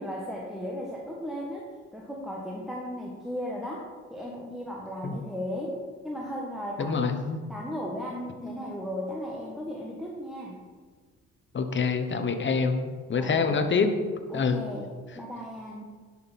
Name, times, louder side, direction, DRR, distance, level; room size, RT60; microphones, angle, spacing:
voice 1, 0.0-7.1 7.5-10.6 13.1-13.7 14.3-15.8, equal, ahead, -3 dB, 1.3 m, -36 dB
voice 2, 6.8-7.4 11.5-13.9 14.3-14.6, left 5 dB, 40° left, 7 dB, 1.1 m, -26 dB
10.5 x 6.0 x 4.2 m, 1.5 s
cardioid pair, 90°, 30 cm